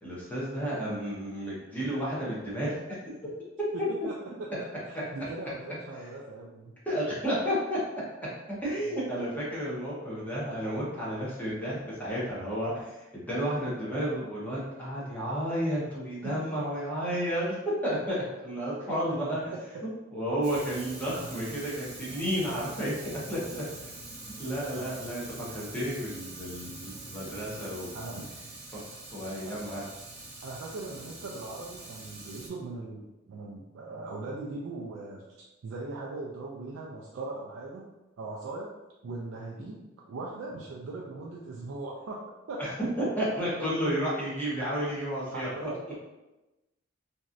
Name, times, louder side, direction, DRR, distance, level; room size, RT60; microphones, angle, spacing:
voice 1, 0.0-2.8 3.1-3.2 6.9-7.8 8.5-12.9 13.3-17.6 17.8-19.5 20.1-23.6 24.4-25.2 25.5-27.9 28.7-29.8 42.6-42.7 43.0-45.7, equal, 10° left, -8 dB, 0.9 m, -32 dB
voice 2, 4.9-6.7 8.7-8.9 16.2-16.5 18.9-19.2 19.7-19.8 21.2-21.3 24.7-24.9 27.9-28.4 30.4-35.3 35.6-38.7 39.0-42.2 42.5-42.6 45.3-46.0, right 2 dB, 70° right, -3 dB, 0.3 m, -40 dB
Fire, 20.4-32.5, right 2 dB, 55° right, 0.9 m, -44 dB
3.0 x 2.6 x 2.5 m, 1.0 s
head